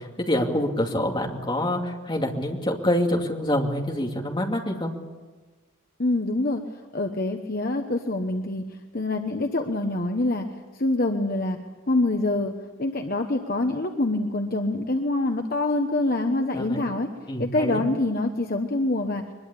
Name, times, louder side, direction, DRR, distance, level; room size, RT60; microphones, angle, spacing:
voice 1, 0.0-4.9 16.5-16.8 17.3-17.8, left 1 dB, 20° left, 1 dB, 2.6 m, -26 dB
voice 2, 6.0-6.6 6.9-8.6 8.9-10.4 10.7-11.6 11.9-12.5 12.8-17.1 17.4-19.2, left 2 dB, 45° left, 4 dB, 1.2 m, -25 dB
23.0 x 21.5 x 8.5 m, 1.3 s
head